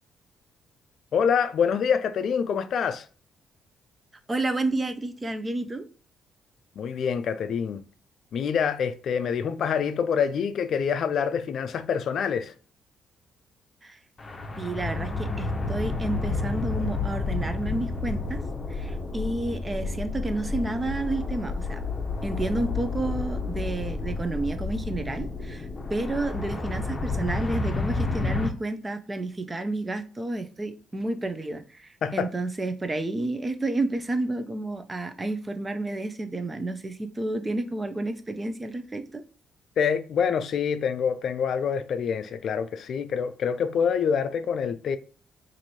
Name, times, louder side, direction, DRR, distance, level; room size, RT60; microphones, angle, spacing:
voice 1, 1.1-3.1 6.8-7.8 8.3-12.5 32.0-32.3 39.8-45.0, left 7 dB, 65° left, 0.3 m, -26 dB
voice 2, 4.3-5.9 13.8-14.0 14.6-18.4 18.7-21.8 22.2-39.2, right 2 dB, 20° right, 0.5 m, -30 dB
sound 1, 14.2-28.5, left 3 dB, 30° left, 0.7 m, -30 dB
3.0 x 2.6 x 4.0 m
cardioid pair, 90°, 0 cm